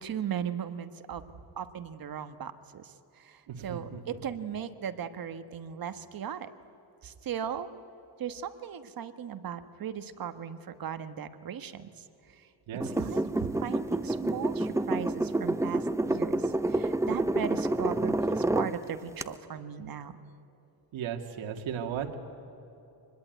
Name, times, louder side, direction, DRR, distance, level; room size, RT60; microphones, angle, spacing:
voice 1, 0.0-2.9 3.2-6.5 7.0-7.7 8.2-11.9 12.8-13.2 13.5-20.1, right 8 dB, 45° right, 10 dB, 1.4 m, -37 dB
voice 2, 3.5-4.2 12.7-12.9 20.9-22.2, right 8 dB, 75° right, 3 dB, 2.3 m, -36 dB
sound 1, 12.8-18.7 19.2-19.3, right 2 dB, 5° right, 0.7 m, -28 dB
25.5 x 20.5 x 9.3 m, 3.0 s
cardioid pair, 120°, 47 cm